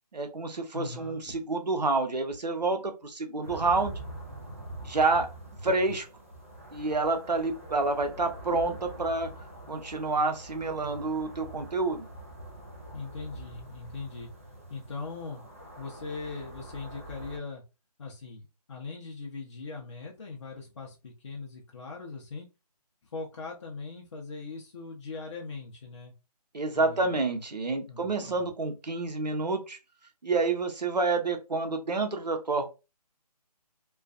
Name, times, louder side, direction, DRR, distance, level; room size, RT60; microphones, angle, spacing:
voice 1, 0.1-3.9 4.8-5.3 5.6-6.1 6.7-9.3 9.7-12.0 26.5-29.8 30.2-32.6, right 3 dB, 85° right, 5 dB, 0.8 m, -28 dB
voice 2, 0.7-1.2 12.9-14.3 14.7-15.4 15.8-17.6 18.0-22.5 23.0-26.1 26.7-27.4 27.9-28.4, left 4 dB, 45° left, -1 dB, 0.6 m, -40 dB
sound 1, 3.4-17.4, right 1 dB, 20° right, 0.3 m, -44 dB
2.4 x 2.3 x 2.3 m, 0.28 s
figure-of-eight pair, 155°, 21 cm